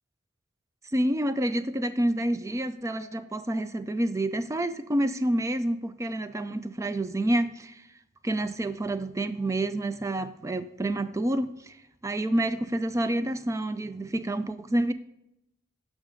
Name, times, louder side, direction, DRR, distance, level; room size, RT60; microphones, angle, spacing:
voice 1, 0.9-7.8 8.2-11.8 12.0-14.9, right 1 dB, 15° right, 0.4 m, -28 dB
9.5 x 6.3 x 3.8 m
head